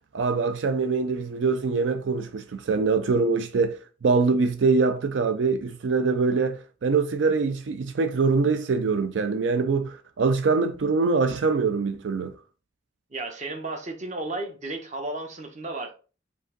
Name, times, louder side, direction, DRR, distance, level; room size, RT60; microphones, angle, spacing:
voice 1, 0.1-12.3, right 4 dB, 85° right, 0.4 m, -24 dB
voice 2, 13.1-15.9, right 2 dB, 40° right, 0.9 m, -33 dB
5.2 x 2.6 x 3.8 m
head